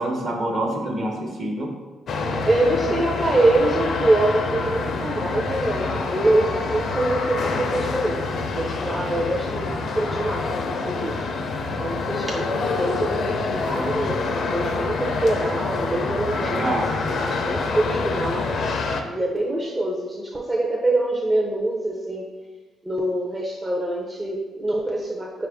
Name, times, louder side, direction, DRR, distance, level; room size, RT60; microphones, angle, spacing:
voice 1, 0.0-1.8 16.3-16.9, right 1 dB, 50° right, 0 dB, 0.9 m, -26 dB
sound 1, 2.1-19.0, left 3 dB, 60° left, 0.4 m, -26 dB
voice 2, 2.5-8.3 8.5-11.2 11.8-16.8 17.1-18.6 19.0-22.2 22.8-25.5, right 1 dB, 20° right, -2 dB, 0.5 m, -24 dB
5.2 x 2.4 x 3.4 m, 1.3 s
cardioid pair, 90°, 0 cm